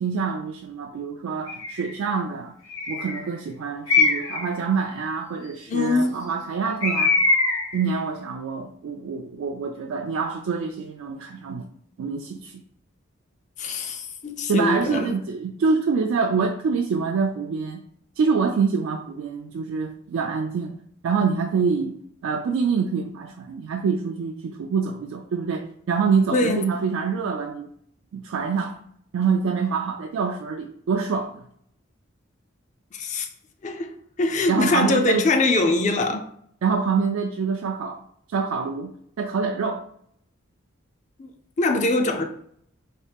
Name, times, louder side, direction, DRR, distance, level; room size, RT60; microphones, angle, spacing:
voice 1, 0.0-2.6 2.9-7.2 7.7-11.7 12.0-12.6 14.5-17.8 18.2-20.8 21.0-22.0 22.2-27.7 28.1-28.8 29.1-31.4 34.5-35.3 36.6-38.0 38.3-39.8, right 5 dB, 80° right, 0.3 m, -26 dB
Bird, 1.5-1.9 2.7-3.2 3.9-4.5 6.8-7.8, left 3 dB, 85° left, 1.2 m, -22 dB
voice 2, 5.7-6.2 13.6-15.1 26.3-26.6 32.9-33.3 33.6-33.9 34.2-36.3 41.2-41.3 41.6-42.2, left 2 dB, 35° left, 0.4 m, -22 dB
4.1 x 2.3 x 3.4 m
head